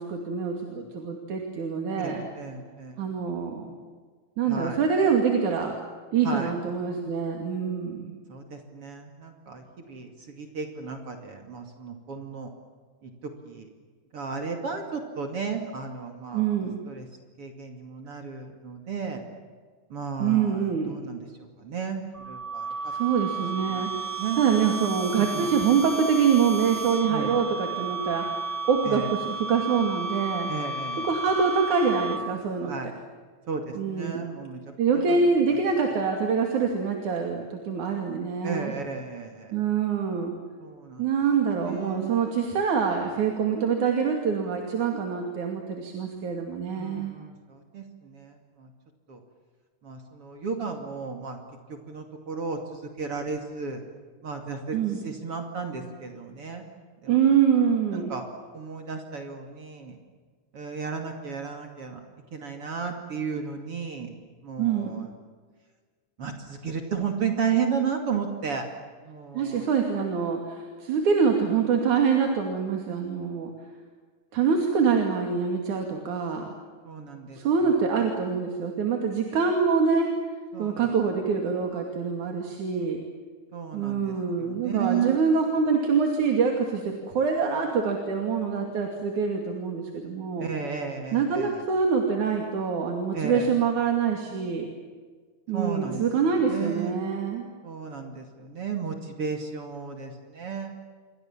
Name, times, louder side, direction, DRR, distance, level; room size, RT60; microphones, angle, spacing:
voice 1, 0.0-2.2 3.0-3.8 4.4-5.8 6.1-8.2 16.3-16.7 20.2-20.9 22.9-30.5 31.0-32.7 33.8-34.3 34.8-38.7 39.5-40.4 41.0-47.2 54.7-55.0 57.1-58.1 64.6-64.9 69.3-73.5 74.3-76.5 77.3-80.1 80.6-83.0 83.7-90.5 91.1-94.7 95.5-97.5, right 6 dB, 80° right, 2 dB, 4.0 m, -25 dB
voice 2, 2.0-3.0 4.5-4.8 6.2-6.5 8.3-12.5 13.0-13.7 14.1-16.5 16.9-17.1 17.4-19.2 19.9-22.0 22.3-22.7 23.7-23.9 24.2-24.4 25.1-25.5 27.1-27.4 28.8-29.1 30.5-31.1 32.7-32.9 33.5-34.6 34.9-35.2 38.4-39.5 40.6-41.1 41.6-42.0 46.7-48.7 49.1-49.2 49.8-51.4 51.7-53.8 54.2-54.8 55.0-56.6 57.0-57.1 57.9-58.2 58.5-60.0 60.5-62.0 62.3-64.1 64.4-65.1 66.2-68.6 69.0-69.6 76.8-77.4 80.5-80.9 83.5-85.1 90.4-91.6 93.1-93.5 95.5-96.0 96.4-97.0 97.6-100.7, right 6 dB, 50° right, 4 dB, 3.3 m, -33 dB
sound 1, 22.1-32.5, right 3 dB, 25° right, 1.3 m, -33 dB
28.5 x 24.0 x 7.5 m, 1.5 s
omnidirectional pair, 3.4 m